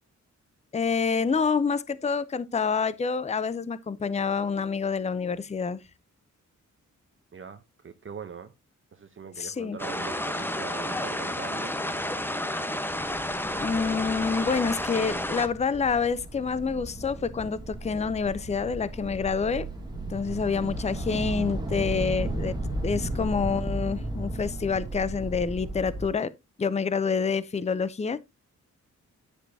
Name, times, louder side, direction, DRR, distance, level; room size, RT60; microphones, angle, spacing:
voice 1, 0.7-5.8 9.4-9.8 13.5-19.7 20.1-22.5 22.8-26.3 26.6-28.2, left 5 dB, 20° left, 0.6 m, -27 dB
voice 2, 7.3-8.5 8.9-11.7 23.2-23.3, right 6 dB, 40° right, 0.8 m, -42 dB
sound 1, 9.8-15.5, left 1 dB, 5° left, 1.0 m, -31 dB
sound 2, 12.9-26.1, right 1 dB, 15° right, 2.4 m, -35 dB
10.0 x 6.7 x 2.7 m
wide cardioid pair, 115°, 30 cm